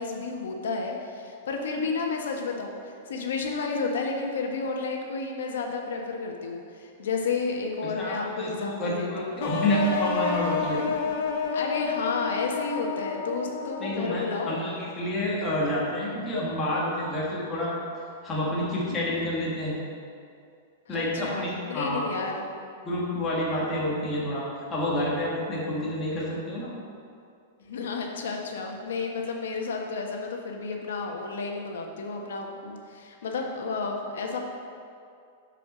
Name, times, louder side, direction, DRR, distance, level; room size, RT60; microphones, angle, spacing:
voice 1, 0.0-9.3 11.5-14.6 20.9-22.4 27.7-34.4, left 4 dB, 85° left, 2 dB, 1.2 m, -31 dB
voice 2, 8.0-10.8 13.8-17.7 18.2-19.8 20.9-22.0 22.8-26.7, left 1 dB, 15° left, -6 dB, 1.4 m, -28 dB
sound 1, 9.4-14.3, left 5 dB, 50° left, 0.7 m, -30 dB
7.4 x 5.0 x 6.0 m, 2.4 s
supercardioid pair, 175°, 0 cm